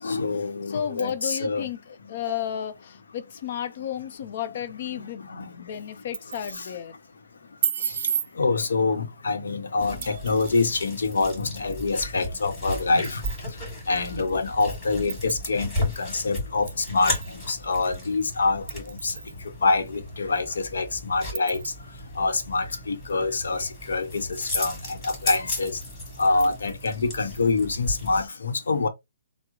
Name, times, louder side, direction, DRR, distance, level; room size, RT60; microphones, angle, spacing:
voice 1, 0.0-1.7 2.2-2.4 4.9-5.0 5.3-5.5 6.5-6.7 7.8-8.0 8.4-13.2 13.9-19.1 19.6-21.7 22.2-25.8 26.2-28.9, left 3 dB, 85° left, 0.8 m, -26 dB
voice 2, 0.7-6.9, left 9 dB, 45° left, 0.6 m, -33 dB
sound 1, 5.9-6.7 7.6-8.3 10.0-10.8 12.3-12.4 13.0-13.4 14.1-14.2 15.1-15.4 16.7-17.3 17.7-17.8 18.7-19.4 19.9-20.0 20.3-20.4 21.3-21.7, right 8 dB, 45° right, 0.4 m, -32 dB
sound 2, 9.8-28.2, left 1 dB, 20° left, 2.3 m, -35 dB
3.6 x 2.1 x 3.0 m
hypercardioid pair, 160°, 0 cm